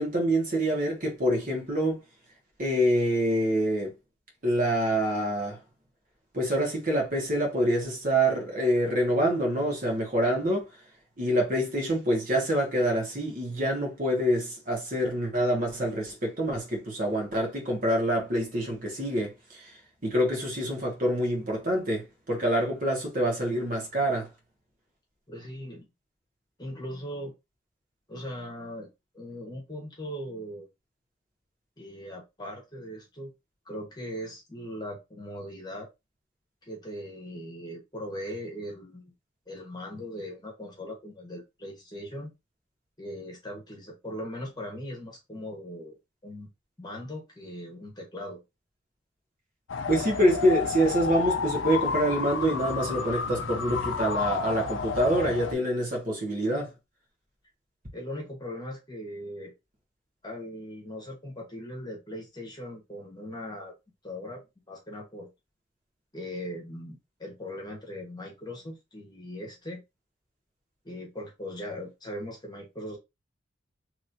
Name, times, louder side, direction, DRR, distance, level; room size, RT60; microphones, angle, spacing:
voice 1, 0.0-2.0 2.6-3.9 4.4-5.6 6.3-10.7 11.2-19.7 20.0-24.3 49.9-56.7, right 1 dB, 45° right, 1.4 m, -26 dB
voice 2, 25.3-25.8 26.6-27.3 28.1-28.9 29.1-30.7 31.8-33.3 33.6-35.9 36.6-39.1 39.5-42.3 43.0-46.0 46.2-46.5 46.8-48.4 57.9-59.5 60.2-63.7 64.0-64.4 64.7-65.3 66.1-69.8 70.8-73.0, equal, 20° left, 1.2 m, -39 dB
sound 1, 49.7-55.5, left 5 dB, 85° left, 0.5 m, -31 dB
3.1 x 2.9 x 2.6 m
head